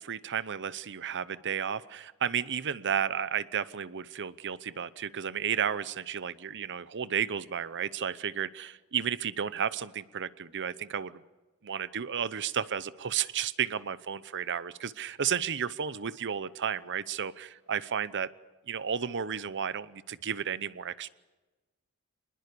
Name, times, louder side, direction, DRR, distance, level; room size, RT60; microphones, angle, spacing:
voice 1, 0.0-11.2 11.6-18.3 18.7-21.1, right 8 dB, 55° right, 16 dB, 0.8 m, -33 dB
26.0 x 20.5 x 6.9 m, 1.2 s
head